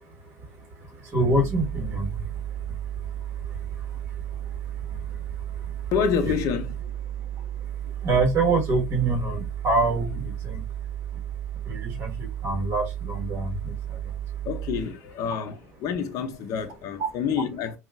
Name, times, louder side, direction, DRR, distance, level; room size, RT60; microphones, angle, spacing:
voice 1, 0.0-5.9 6.2-6.4 7.1-14.5 17.0-17.1, right 2 dB, 30° right, 1.4 m, -28 dB
sound 1, 1.3-14.8, right 11 dB, 50° right, 1.2 m, -33 dB
voice 2, 5.9-6.7 14.4-15.6 15.8-17.8, left 7 dB, 45° left, 0.6 m, -27 dB
5.3 x 2.4 x 2.4 m
hypercardioid pair, 85°, 8 cm